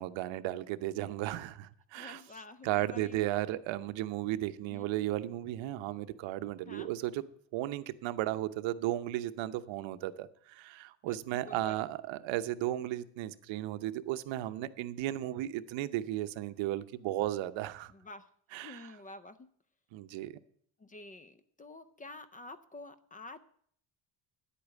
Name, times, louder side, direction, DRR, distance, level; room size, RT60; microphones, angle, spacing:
voice 1, 0.0-2.2 2.6-7.2 7.5-17.9 18.5-18.9 19.9-20.4, right 14 dB, 85° right, 12 dB, 0.9 m, -35 dB
voice 2, 1.9-3.5 4.7-4.9 6.7-6.9 11.1-11.9 17.9-18.3 18.5-19.5 20.8-23.4, left 2 dB, 20° left, 13 dB, 0.4 m, -49 dB
10.0 x 8.5 x 8.2 m, 0.62 s
cardioid pair, 165°, 44 cm